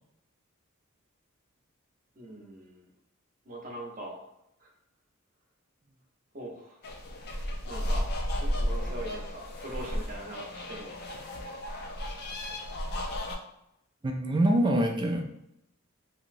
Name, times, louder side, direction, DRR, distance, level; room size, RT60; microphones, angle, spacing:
voice 1, 2.2-2.9 3.5-4.2 4.6-4.7 6.3-6.9 7.3-11.0, right 1 dB, 40° right, -2 dB, 0.7 m, -42 dB
sound 1, 6.8-13.4, equal, 50° left, 0.4 m, -33 dB
voice 2, 14.0-15.2, right 1 dB, 20° right, 3 dB, 0.3 m, -25 dB
2.9 x 2.8 x 2.6 m, 0.81 s
head